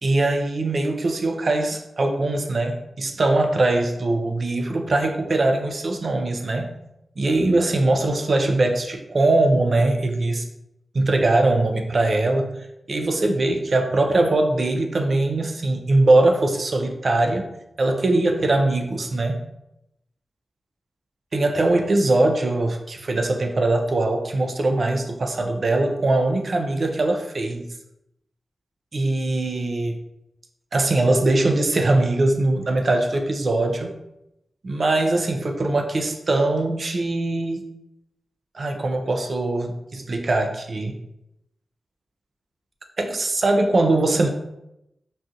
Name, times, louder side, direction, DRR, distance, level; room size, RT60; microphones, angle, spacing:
voice 1, 0.0-6.7 7.2-10.4 10.9-12.6 12.9-17.5 17.8-19.4 21.3-27.7 28.9-30.0 30.7-34.0 34.6-37.7 38.5-41.0 43.0-44.3, right 2 dB, 55° right, 5 dB, 0.4 m, -21 dB
4.1 x 2.4 x 2.4 m, 0.85 s
wide cardioid pair, 85°, 0 cm